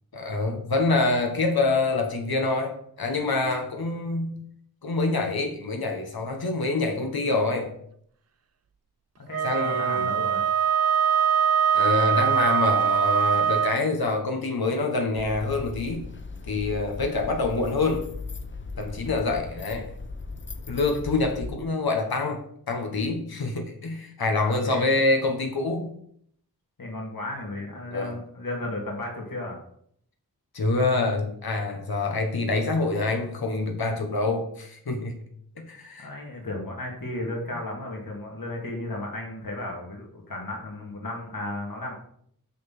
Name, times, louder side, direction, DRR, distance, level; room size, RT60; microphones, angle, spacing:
voice 1, 0.1-4.4 4.8-7.7 9.4-10.1 11.7-16.1 16.4-18.1 18.8-19.9 20.7-25.9 27.9-28.1 30.5-35.2 35.6-36.1, left 3 dB, 90° left, 3 dB, 1.3 m, -26 dB
voice 2, 9.3-10.4 24.4-25.0 26.8-29.6 36.0-41.9, left 2 dB, 70° left, 0 dB, 2.4 m, -34 dB
Wind instrument woodwind instrument, 9.3-13.8, right 8 dB, 45° right, 0.5 m, -22 dB
sound 1, 15.2-21.6, left 3 dB, 35° left, 0.7 m, -38 dB
6.4 x 5.8 x 5.9 m, 0.67 s
wide cardioid pair, 85°, 36 cm